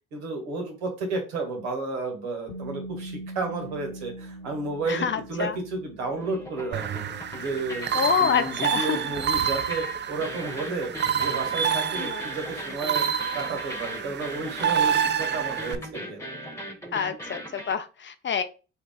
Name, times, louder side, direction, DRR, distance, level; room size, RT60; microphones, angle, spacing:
voice 1, 0.1-7.9 8.2-13.0 13.3-16.2, right 3 dB, 80° right, 2 dB, 1.4 m, -32 dB
sound 1, 2.5-14.3, right 1 dB, 65° left, 1.4 m, -45 dB
sound 2, 3.6-5.9 6.1-17.7, equal, 10° left, 1.2 m, -40 dB
voice 2, 4.9-5.5 7.9-9.0 12.0-12.2 16.9-18.4, left 7 dB, 35° left, 10 dB, 0.6 m, -27 dB
sound 3, 6.7-15.8, right 8 dB, 35° right, 0.5 m, -28 dB
4.4 x 2.9 x 3.7 m, 0.33 s
hypercardioid pair, 50°, 33 cm